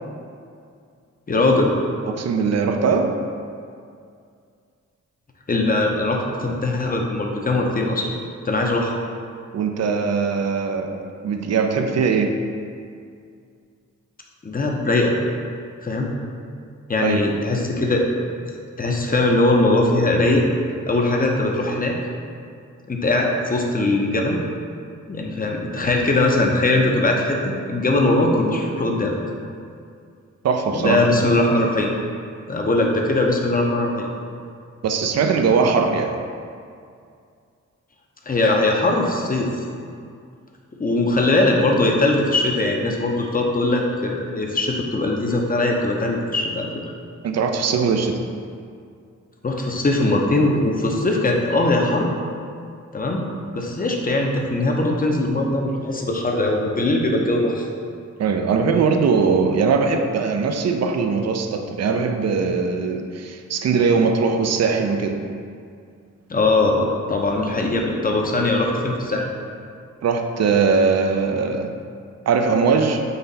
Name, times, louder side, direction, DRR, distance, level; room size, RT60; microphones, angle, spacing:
voice 1, 1.3-1.7 5.5-8.1 8.4-8.9 14.4-15.1 15.8-16.1 16.9-18.1 18.8-20.4 20.9-22.0 22.9-24.4 25.1-29.1 30.8-31.9 32.5-34.1 38.3-39.5 40.8-46.7 49.4-52.1 52.9-53.2 53.5-57.7 66.3-69.3, left 2 dB, 30° left, 0 dB, 0.6 m, -20 dB
voice 2, 2.0-3.2 9.5-12.4 17.0-17.3 30.4-31.1 34.8-36.2 47.2-48.2 58.2-65.2 70.0-71.7 72.3-73.0, right 5 dB, 55° right, 5 dB, 0.4 m, -20 dB
4.0 x 2.5 x 4.0 m, 2.3 s
cardioid pair, 50°, 31 cm